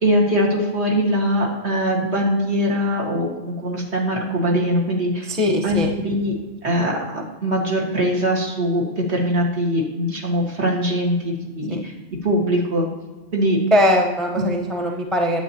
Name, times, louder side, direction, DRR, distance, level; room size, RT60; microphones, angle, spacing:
voice 1, 0.0-5.3 5.6-6.3 6.6-11.9 12.2-12.9 13.3-13.6 14.4-14.5, equal, 60° right, -1 dB, 2.0 m, -22 dB
voice 2, 5.3-5.9 11.7-11.8 13.7-15.4, left 1 dB, ahead, 1 dB, 0.6 m, -20 dB
10.5 x 7.9 x 2.9 m, 1.2 s
omnidirectional pair, 1.3 m